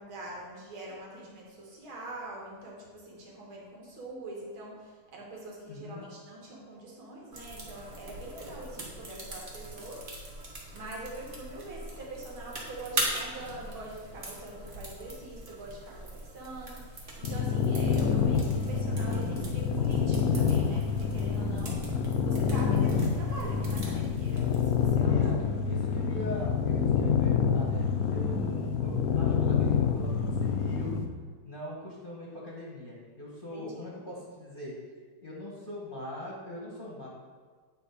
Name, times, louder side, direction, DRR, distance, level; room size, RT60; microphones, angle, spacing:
voice 1, 0.0-25.4 33.5-33.7, right 1 dB, 85° right, -3 dB, 2.3 m, -44 dB
voice 2, 5.7-6.1 24.7-31.0 31.4-34.8 35.2-37.1, left 1 dB, 30° left, -4 dB, 1.1 m, -42 dB
sound 1, 7.3-25.0, right 1 dB, 30° right, 1.1 m, -41 dB
sound 2, 17.2-31.0, left 6 dB, 65° left, 0.9 m, -27 dB
8.8 x 3.5 x 4.9 m, 1.5 s
omnidirectional pair, 2.2 m